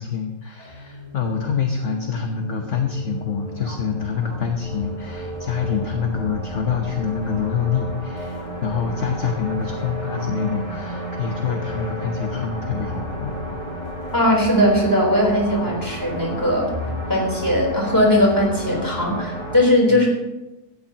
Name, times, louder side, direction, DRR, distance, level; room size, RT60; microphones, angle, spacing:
voice 1, 0.0-13.6 15.7-15.8 16.8-17.0 19.9-20.0, left 6 dB, 50° left, 3 dB, 1.4 m, -26 dB
sound 1, 0.6-19.5, equal, 35° right, 4.3 m, -32 dB
voice 2, 14.1-16.7 17.1-20.1, left 1 dB, 10° left, -1 dB, 3.8 m, -19 dB
17.0 x 13.5 x 2.9 m, 0.99 s
omnidirectional pair, 1.7 m